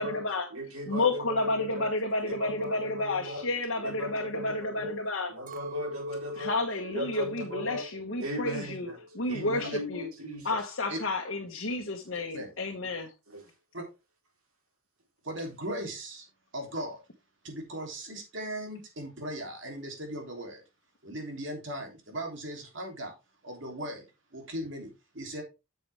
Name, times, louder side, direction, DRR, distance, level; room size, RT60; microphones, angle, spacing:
voice 1, 0.0-0.5 0.9-5.3 6.4-8.9 9.1-10.1 10.4-13.1, left 2 dB, 60° left, 1.3 m, -31 dB
voice 2, 0.5-1.9 2.2-3.5 3.8-4.9 5.3-6.5 6.9-7.8 8.2-9.0 9.3-10.5 13.3-13.4, left 1 dB, 90° right, 4.0 m, -37 dB
Chink clink, 5.5-9.8 10.1-10.9, equal, 40° right, 0.8 m, -44 dB
voice 3, 15.2-16.2 16.5-17.0 17.4-20.6 21.0-23.1 23.4-24.0 24.3-25.4, right 1 dB, 60° right, 3.2 m, -38 dB
8.6 x 6.9 x 3.5 m
head